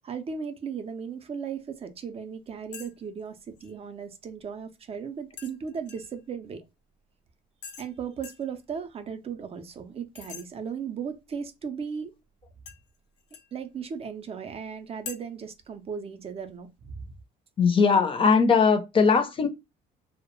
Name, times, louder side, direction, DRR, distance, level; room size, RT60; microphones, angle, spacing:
voice 1, 0.0-6.6 7.8-12.1 13.5-17.1 17.9-18.0, right 6 dB, 35° right, 0.4 m, -36 dB
sound 1, 2.7-2.9 3.2-3.7 5.4-6.2 7.6-7.9 8.2-8.5 10.2-10.5 12.7-13.5 15.1-15.2, left 7 dB, 85° left, 0.6 m, -43 dB
voice 2, 17.6-19.5, left 5 dB, 30° left, 0.5 m, -20 dB
2.2 x 2.0 x 2.9 m
cardioid pair, 110°, 17 cm